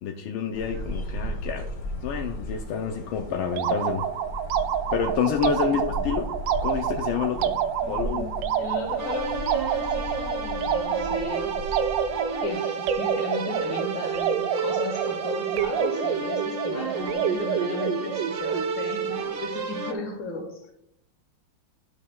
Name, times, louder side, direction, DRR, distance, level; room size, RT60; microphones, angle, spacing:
voice 1, 0.0-1.7 2.0-4.0 4.9-6.3 6.6-7.6 7.9-8.3, left 7 dB, 90° left, 3 dB, 1.5 m, -28 dB
sound 1, 0.5-12.5, equal, 45° left, 1.5 m, -36 dB
sound 2, 3.5-18.7, right 8 dB, 75° right, 1.2 m, -28 dB
voice 2, 5.6-6.3 7.8-11.8 12.4-20.7, left 2 dB, 70° left, 3 dB, 2.4 m, -36 dB
sound 3, 9.0-19.9, right 4 dB, 55° right, 1.5 m, -32 dB
11.0 x 7.2 x 2.3 m, 0.75 s
omnidirectional pair, 2.2 m